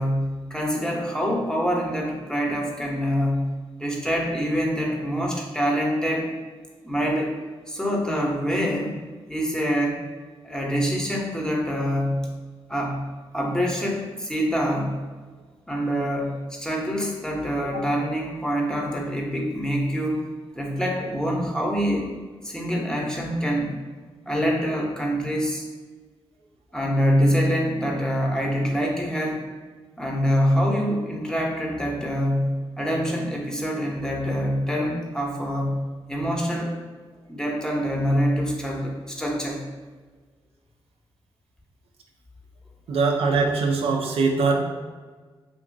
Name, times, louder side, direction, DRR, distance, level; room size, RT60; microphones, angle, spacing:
voice 1, 0.0-3.5 3.8-6.3 6.8-7.3 7.7-9.0 9.3-10.1 10.4-12.3 12.7-13.1 13.3-15.0 15.7-20.3 20.5-22.1 22.4-23.8 24.3-25.6 26.7-29.4 30.0-35.8 36.1-36.7 37.3-39.6, equal, 5° left, -1 dB, 0.7 m, -25 dB
voice 2, 42.9-44.6, right 4 dB, 80° right, 1 dB, 0.4 m, -22 dB
2.8 x 2.6 x 2.6 m, 1.4 s
cardioid pair, 50°, 10 cm